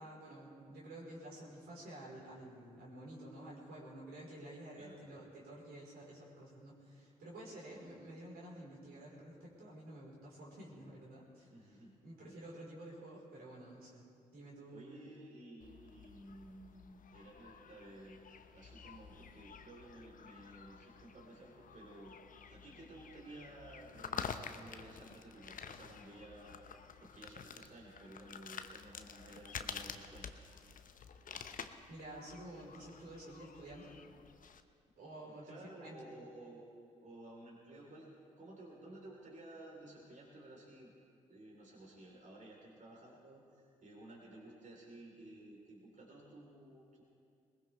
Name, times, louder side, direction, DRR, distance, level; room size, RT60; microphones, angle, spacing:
voice 1, 0.0-11.5 12.0-14.1 14.3-15.0 31.9-33.9 35.0-36.1, right 1 dB, 65° right, -5 dB, 4.4 m, -51 dB
voice 2, 11.5-12.0 12.2-12.4 14.7-18.2 18.5-22.2 22.5-26.7 27.0-30.5 35.2-40.9 41.3-47.0, right 1 dB, 50° right, -3 dB, 4.0 m, -54 dB
sound 1, 15.6-34.6, left 6 dB, 50° left, 0.9 m, -50 dB
20.5 x 19.0 x 3.4 m, 2.4 s
hypercardioid pair, 40°, 17 cm